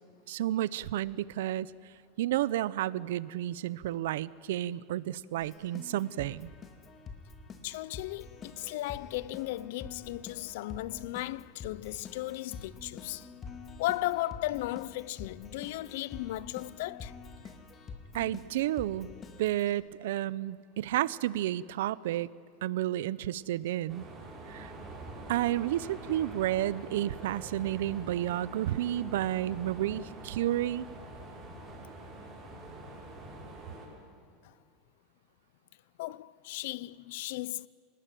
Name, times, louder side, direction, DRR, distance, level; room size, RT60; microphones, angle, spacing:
voice 1, 0.3-1.7 2.2-6.5 18.1-19.1 19.4-22.3 22.6-24.1 24.5-24.7 25.3-30.9, right 13 dB, 85° right, 0.7 m, -31 dB
Keyboard (musical), 5.4-19.7, left 5 dB, 25° left, 2.1 m, -47 dB
voice 2, 7.6-13.3 13.8-17.1 34.4-34.5 36.0-37.7, left 17 dB, 70° left, 0.6 m, -36 dB
sound 1, 23.9-33.9, right 2 dB, 15° right, 6.6 m, -45 dB
27.5 x 19.5 x 9.2 m
supercardioid pair, 155°, 0 cm